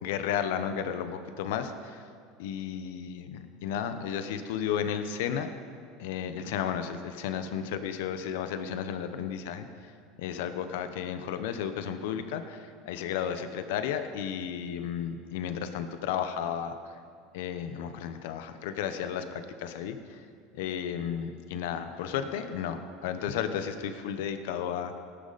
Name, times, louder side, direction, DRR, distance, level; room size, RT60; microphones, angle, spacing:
voice 1, 0.0-2.0 2.4-5.5 6.0-9.7 10.2-16.7 17.3-20.2 20.5-25.0, left 8 dB, 80° left, 9 dB, 1.0 m, -33 dB
18.0 x 10.5 x 4.2 m, 2.2 s
supercardioid pair, 125°, 0 cm